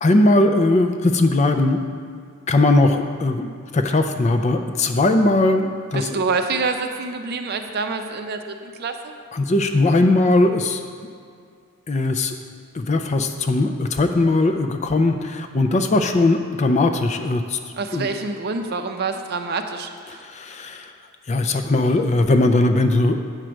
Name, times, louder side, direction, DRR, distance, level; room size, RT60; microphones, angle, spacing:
voice 1, 0.0-1.8 2.5-6.2 9.3-10.9 11.9-12.4 12.7-17.6 17.9-18.1 20.1-20.9 21.3-23.2, left 2 dB, 30° left, 6 dB, 0.4 m, -19 dB
voice 2, 5.9-9.1 17.8-20.2, right 4 dB, 45° right, 6 dB, 0.5 m, -26 dB
8.9 x 4.5 x 6.3 m, 2.2 s
head